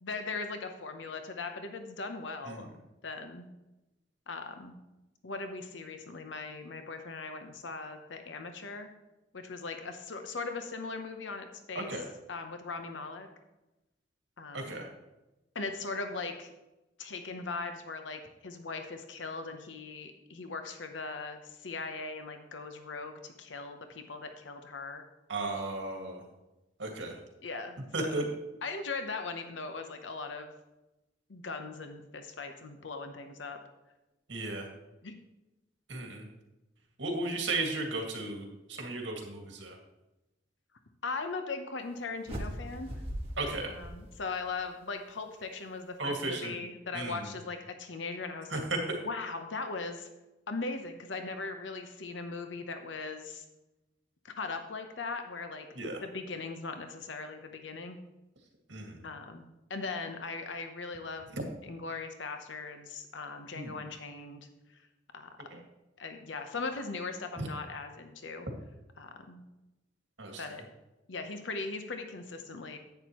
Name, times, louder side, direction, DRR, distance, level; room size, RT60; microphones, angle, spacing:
voice 1, 0.0-2.7 3.0-3.5 4.3-4.8 5.2-8.9 9.3-12.0 12.3-13.3 14.4-14.8 15.5-16.5 17.0-25.0 27.4-28.2 28.6-30.5 31.3-33.6 35.0-35.1 41.0-42.9 43.7-48.6 49.0-50.1 50.5-53.4 54.2-55.7 56.0-58.0 59.0-61.3 61.6-64.5 65.1-65.6 66.0-68.5 69.0-69.4 70.4-70.6 71.1-72.8, left 3 dB, 90° left, 6 dB, 0.9 m, -39 dB
voice 2, 14.5-14.9 25.3-26.2 26.8-27.1 27.9-28.3 34.3-34.7 35.9-36.3 37.0-39.8 43.4-43.7 46.0-46.5 46.9-47.2 48.5-49.0 55.8-56.0 58.7-59.0 63.5-63.7 65.5-65.6 67.4-67.5 70.2-70.4, right 2 dB, 85° right, 2 dB, 2.0 m, -35 dB
sound 1, 42.2-44.6, equal, 35° right, 1.8 m, -40 dB
10.5 x 8.9 x 3.0 m, 0.99 s
head